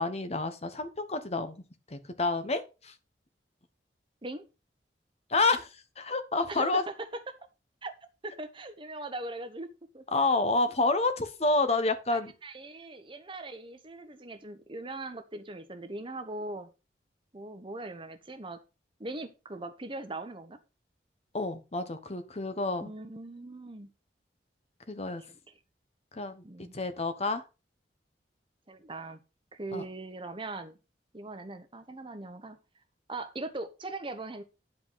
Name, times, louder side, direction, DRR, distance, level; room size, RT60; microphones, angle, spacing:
voice 1, 0.0-1.6 1.9-2.9 5.3-6.8 10.1-12.3 21.3-22.9 24.9-25.2 26.1-26.4 26.7-27.4 29.7-29.8, left 3 dB, 35° left, 10 dB, 1.2 m, -29 dB
voice 2, 6.5-7.4 7.8-7.9 8.2-9.7 9.9-10.1 12.1-16.7 17.3-18.6 19.0-20.6 22.8-23.9 25.3-25.4 26.4-26.7 28.7-29.2 29.5-30.8 31.1-32.6 33.1-34.4, right 2 dB, 30° right, 9 dB, 1.1 m, -40 dB
10.0 x 5.2 x 5.7 m, 0.29 s
head